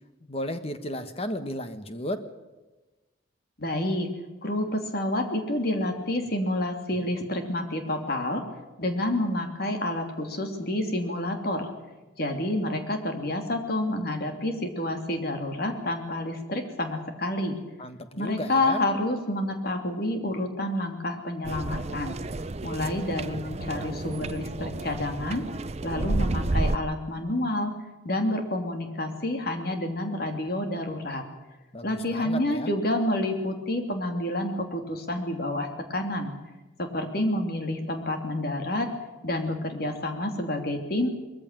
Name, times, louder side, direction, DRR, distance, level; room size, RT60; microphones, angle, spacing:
voice 1, 0.3-2.3 17.8-18.8 31.7-32.7, left 1 dB, 30° left, 9 dB, 1.4 m, -34 dB
voice 2, 3.6-4.1 4.4-8.4 8.8-11.7 12.2-17.6 18.2-22.2 22.6-25.4 25.8-27.7 28.0-31.2 31.8-36.3 36.8-38.9 39.2-41.1, left 1 dB, 50° left, 5 dB, 2.9 m, -29 dB
sound 1, 21.4-26.8, right 2 dB, 35° right, 0.6 m, -31 dB
21.0 x 15.0 x 9.1 m, 1.1 s
head